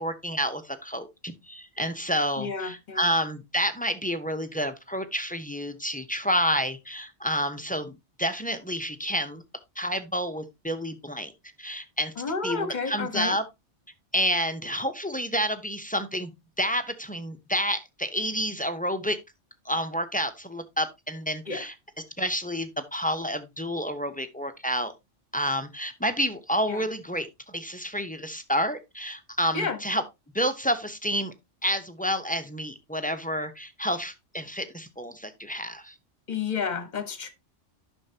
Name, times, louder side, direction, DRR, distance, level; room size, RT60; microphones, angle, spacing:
voice 1, 0.0-9.4 9.8-11.3 11.6-12.1 12.4-13.4 14.1-16.3 16.6-19.2 19.6-21.7 22.2-24.9 25.3-30.0 30.3-31.3 31.6-36.0, equal, 10° left, 0.5 m, -29 dB
voice 2, 2.4-3.1 12.2-13.4 21.5-21.6 26.7-26.8 29.5-29.8 36.3-37.3, left 5 dB, 40° left, 1.2 m, -31 dB
10.0 x 6.2 x 2.8 m
omnidirectional pair, 1.2 m